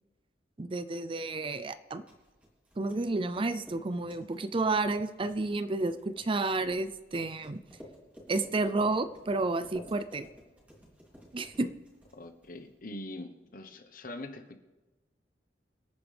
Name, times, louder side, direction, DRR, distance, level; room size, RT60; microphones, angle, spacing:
voice 1, 0.6-2.0 2.8-7.6 8.3-10.3 11.3-11.7, right 3 dB, 30° right, 12 dB, 0.5 m, -31 dB
sound 1, 1.8-12.8, equal, 10° right, 3.0 m, -54 dB
voice 2, 12.1-14.6, left 1 dB, 50° left, 7 dB, 1.2 m, -43 dB
26.0 x 9.0 x 3.5 m, 1.1 s
head